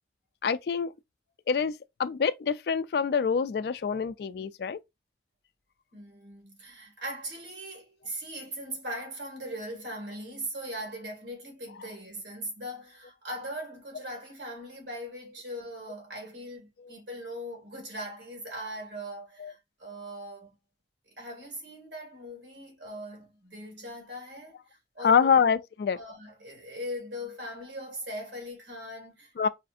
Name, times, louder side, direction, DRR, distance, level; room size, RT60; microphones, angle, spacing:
voice 1, 0.4-0.9 1.5-4.8 19.4-19.5 25.0-26.0 29.4-29.5, left 6 dB, 60° left, 0.3 m, -26 dB
voice 2, 5.9-20.5 21.1-25.3 25.9-29.5, equal, 80° right, 2.0 m, -40 dB
5.6 x 2.5 x 2.4 m
head